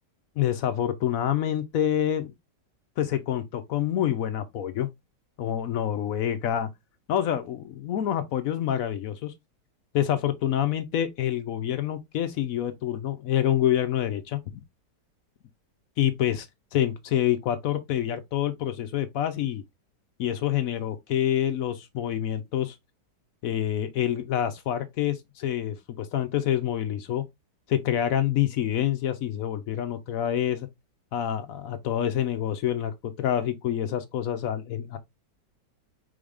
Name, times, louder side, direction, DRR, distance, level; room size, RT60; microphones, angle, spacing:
voice 1, 0.4-2.3 3.0-4.9 5.4-6.7 7.1-9.3 9.9-14.4 16.0-16.5 16.7-19.6 20.2-22.8 23.4-27.2 27.7-30.7 31.1-35.0, left 11 dB, 70° left, 0.9 m, -27 dB
5.0 x 3.9 x 2.4 m
omnidirectional pair, 1.9 m